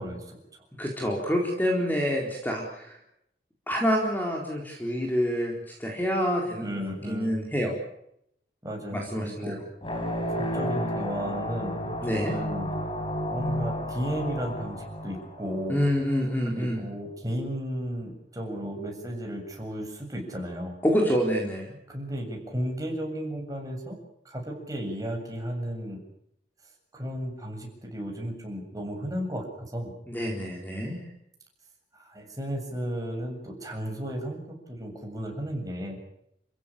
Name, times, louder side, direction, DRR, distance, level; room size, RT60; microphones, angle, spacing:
voice 1, 0.0-0.6 6.6-7.4 8.6-9.6 10.3-12.7 13.3-15.9 16.5-20.7 21.9-24.0 24.2-26.0 26.9-29.9 31.9-36.0, equal, 20° right, 1 dB, 7.6 m, -34 dB
voice 2, 0.8-3.0 3.7-6.8 7.1-7.8 8.9-9.6 12.0-12.3 15.7-16.8 20.8-21.8 30.1-31.0, equal, 10° left, 0 dB, 4.1 m, -27 dB
sound 1, 9.8-16.0, equal, 30° left, 3.9 m, -32 dB
29.5 x 15.5 x 9.0 m, 0.76 s
head